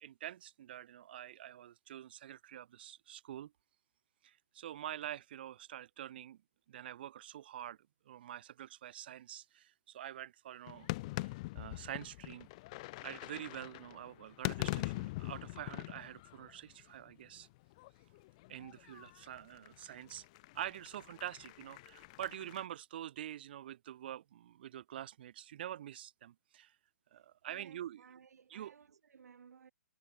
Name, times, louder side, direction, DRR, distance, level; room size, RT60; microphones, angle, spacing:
voice 1, 0.0-3.5 4.2-6.4 6.7-7.8 8.1-10.9 11.2-12.5 13.0-17.5 18.5-20.2 20.5-26.7 27.1-28.0 28.5-28.8, right 11 dB, 40° right, 0.5 m, -46 dB
sound 1, 10.7-17.1 17.4-22.6, left 21 dB, 25° left, 0.7 m, -43 dB
voice 2, 27.5-29.7, right 6 dB, 85° right, 1.4 m, -59 dB
hypercardioid pair, 170°, 9 cm